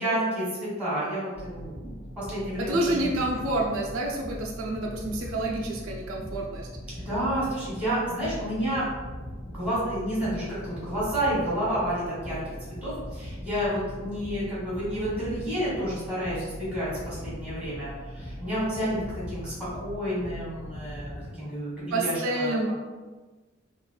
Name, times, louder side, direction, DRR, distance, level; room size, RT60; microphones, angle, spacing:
voice 1, 0.0-3.2 3.5-3.6 7.0-8.8 9.5-19.0 19.3-19.5 19.8-22.5, equal, 5° right, -9 dB, 1.4 m, -30 dB
sound 1, 1.3-21.3, equal, 55° left, 0.8 m, -40 dB
voice 2, 2.6-6.7 21.9-22.7, right 1 dB, 85° right, -1 dB, 0.4 m, -28 dB
3.1 x 2.4 x 2.2 m, 1.3 s
head